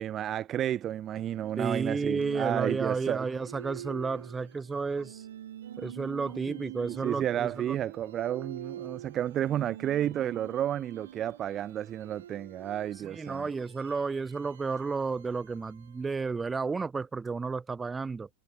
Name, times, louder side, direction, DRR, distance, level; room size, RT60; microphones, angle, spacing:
voice 1, 0.0-3.3 6.5-6.6 6.8-13.5, right 11 dB, 30° right, 0.4 m, -31 dB
sound 1, 1.2-16.3, right 10 dB, 60° right, 2.8 m, -46 dB
voice 2, 1.6-5.2 5.8-7.8 13.0-18.3, right 4 dB, 15° right, 2.7 m, -32 dB
figure-of-eight pair, 90°, 0 cm